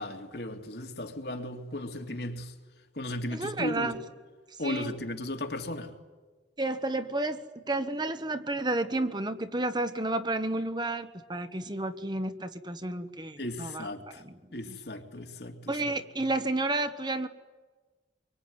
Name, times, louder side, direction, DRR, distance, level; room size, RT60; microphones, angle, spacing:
voice 1, 0.0-2.5 3.0-3.9 4.6-5.9 13.4-14.2 14.5-15.7, left 1 dB, 60° left, 2.9 m, -36 dB
voice 2, 3.3-4.0 4.6-4.9 6.6-13.9 14.1-14.4 14.6-14.8 15.7-17.3, right 2 dB, 25° right, 1.2 m, -31 dB
25.5 x 24.0 x 9.8 m
head